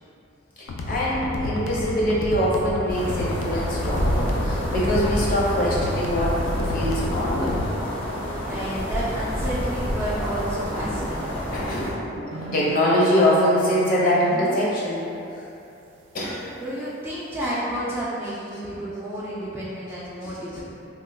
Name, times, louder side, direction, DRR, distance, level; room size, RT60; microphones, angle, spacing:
sound 1, 0.7-7.7, left 2 dB, 90° left, 0.4 m, -31 dB
voice 1, 0.9-6.3 6.7-7.6 11.5-15.0 16.1-16.4, equal, 45° left, -6 dB, 0.6 m, -23 dB
sound 2, 2.9-11.9, equal, 70° left, 1.0 m, -28 dB
voice 2, 8.4-11.4 16.6-20.6, right 1 dB, 10° right, -8 dB, 0.3 m, -30 dB
sound 3, 12.3-14.6, right 1 dB, 85° right, 0.4 m, -34 dB
3.0 x 2.2 x 3.3 m, 2.7 s
head